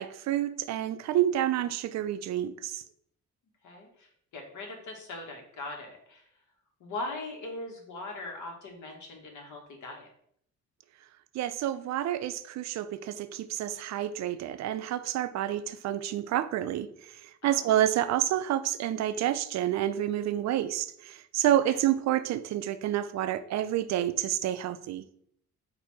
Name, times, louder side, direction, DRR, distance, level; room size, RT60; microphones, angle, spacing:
voice 1, 0.0-2.8 11.3-25.0, right 12 dB, 65° right, 13 dB, 0.4 m, -29 dB
voice 2, 3.6-6.3 6.8-10.1 17.4-17.7 21.7-21.8, left 2 dB, 75° left, 2 dB, 1.3 m, -40 dB
4.3 x 2.6 x 4.7 m, 0.67 s
cardioid pair, 90°, 30 cm